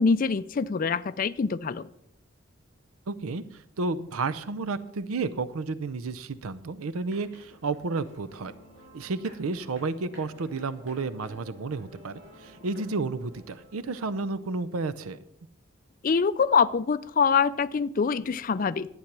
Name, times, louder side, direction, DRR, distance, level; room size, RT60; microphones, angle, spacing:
voice 1, 0.0-1.8 16.0-18.9, left 5 dB, 40° left, 14 dB, 0.4 m, -24 dB
voice 2, 3.1-8.5 8.9-15.2, right 3 dB, 90° right, 15 dB, 0.6 m, -32 dB
sound 1, 7.1-14.0, equal, 65° right, 6.3 m, -55 dB
sound 2, 7.9-14.3, equal, 30° right, 3.5 m, -53 dB
11.5 x 9.0 x 6.0 m, 0.78 s
head